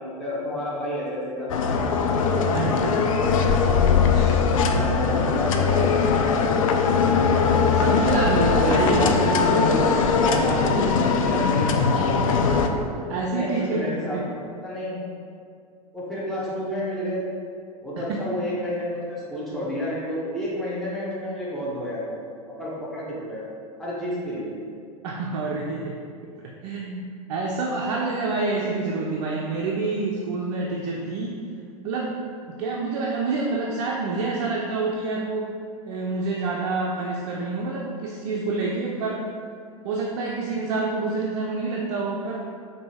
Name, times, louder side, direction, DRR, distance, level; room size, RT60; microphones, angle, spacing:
voice 1, 0.2-1.8 4.7-6.5 8.5-9.8 10.1-12.1 13.3-14.2 14.6-15.0 15.9-17.3 17.8-22.2 22.6-23.4 23.8-24.5, left 1 dB, ahead, -9 dB, 1.1 m, -29 dB
sound 1, 1.5-12.7, left 5 dB, 60° left, 0.4 m, -21 dB
voice 2, 2.4-3.1 3.5-3.7 4.0-4.5 7.7-9.1 13.1-14.3 18.1-18.3 25.0-31.4 31.8-35.5 35.9-39.3 39.8-42.5, right 3 dB, 50° right, -2 dB, 0.5 m, -28 dB
5.0 x 2.6 x 3.3 m, 2.3 s
figure-of-eight pair, 90°, 19 cm